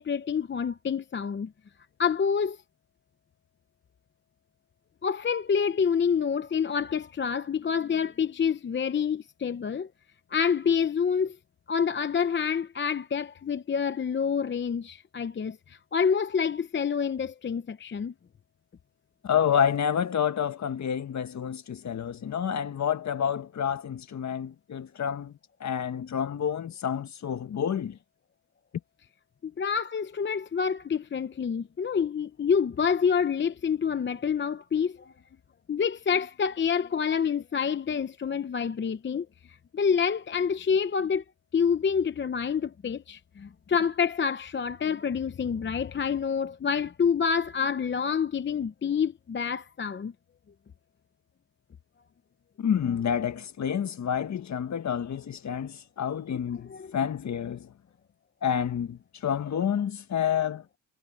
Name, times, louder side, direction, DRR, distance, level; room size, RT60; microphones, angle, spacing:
voice 1, 0.0-1.5 2.0-2.6 5.0-9.9 10.3-11.4 11.7-18.1 29.4-35.1 35.7-41.2 41.5-50.1 56.7-56.9, left 6 dB, 30° left, 0.8 m, -27 dB
voice 2, 19.2-28.0 52.6-57.7 58.4-60.6, left 8 dB, 45° left, 1.5 m, -29 dB
cardioid pair, 110°, 39 cm